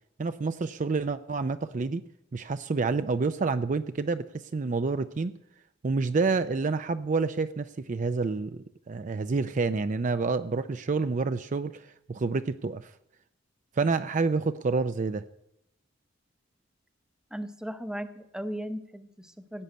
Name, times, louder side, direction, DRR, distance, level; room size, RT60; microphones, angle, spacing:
voice 1, 0.2-2.0 2.3-5.3 5.8-12.9 13.8-15.2, right 4 dB, 40° right, 10 dB, 0.4 m, -28 dB
voice 2, 17.3-19.6, equal, 5° right, 10 dB, 0.8 m, -37 dB
16.5 x 5.6 x 9.3 m, 0.82 s
head